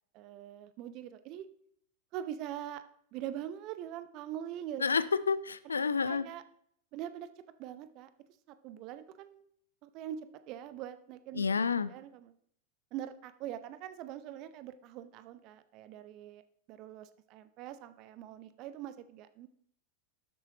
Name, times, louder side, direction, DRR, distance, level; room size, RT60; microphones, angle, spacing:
voice 1, 0.1-1.5 2.1-2.8 3.1-4.8 6.0-6.4 6.9-7.3 7.6-8.1 8.5-9.4 9.8-11.5 11.9-12.3 12.9-16.4 16.7-19.5, right 11 dB, 40° right, 12 dB, 0.7 m, -43 dB
voice 2, 4.8-6.2 11.3-11.9, left 5 dB, 75° left, 15 dB, 0.4 m, -29 dB
12.5 x 7.4 x 2.9 m, 0.68 s
figure-of-eight pair, 90°, 0 cm